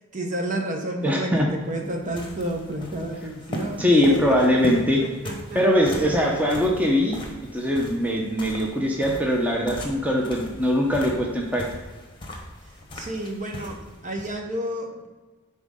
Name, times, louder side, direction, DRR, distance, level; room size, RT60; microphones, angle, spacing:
voice 1, 0.1-6.2 12.6-15.1, right 1 dB, 35° right, 2 dB, 0.9 m, -32 dB
voice 2, 1.0-1.5 3.8-5.0 5.5-7.2 7.5-11.7, equal, 5° right, -1 dB, 0.8 m, -21 dB
sound 1, 1.4-14.3, left 1 dB, 20° left, 1.1 m, -38 dB
10.0 x 4.1 x 3.7 m, 1.3 s
head